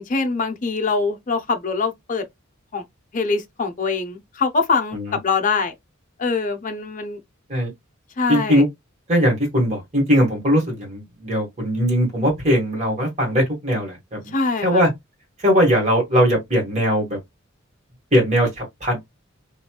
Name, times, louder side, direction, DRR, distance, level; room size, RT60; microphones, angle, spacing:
voice 1, 0.0-2.3 2.7-2.8 3.1-5.7 6.2-7.2 8.2-8.6 14.3-14.8, left 4 dB, 40° left, 0.6 m, -23 dB
voice 2, 8.3-8.7 9.1-14.3 14.6-14.9 15.4-17.2 18.1-19.0, equal, 35° right, 1.4 m, -20 dB
3.0 x 2.5 x 2.2 m
head